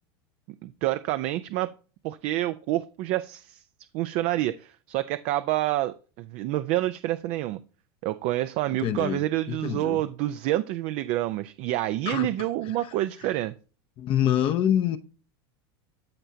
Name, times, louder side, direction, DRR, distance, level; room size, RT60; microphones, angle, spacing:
voice 1, 0.6-1.7 2.0-3.6 3.9-7.6 8.0-13.5, right 15 dB, 55° right, 0.5 m, -28 dB
voice 2, 8.8-9.2 9.5-10.0 12.1-12.5 14.0-15.0, left 10 dB, 40° left, 0.7 m, -25 dB
13.0 x 4.4 x 2.7 m
supercardioid pair, 115°, 13 cm